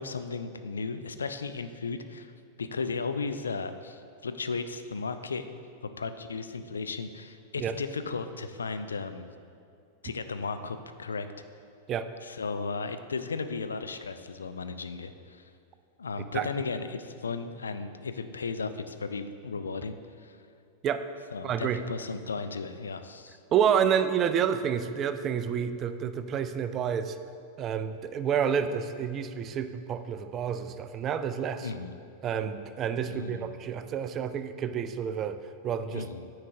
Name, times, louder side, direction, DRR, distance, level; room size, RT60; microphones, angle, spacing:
voice 1, 0.0-2.3 2.6-5.5 6.0-9.3 10.0-11.3 12.2-15.4 16.0-20.4 21.3-23.4 31.6-32.0 33.1-33.6 35.9-36.3, left 4 dB, 70° left, 10 dB, 0.3 m, -35 dB
voice 2, 21.4-21.8 23.5-27.2 27.6-31.7 32.2-35.4 35.6-36.0, right 8 dB, 30° right, 10 dB, 0.4 m, -29 dB
9.3 x 4.8 x 3.7 m, 2.4 s
figure-of-eight pair, 90°, 0 cm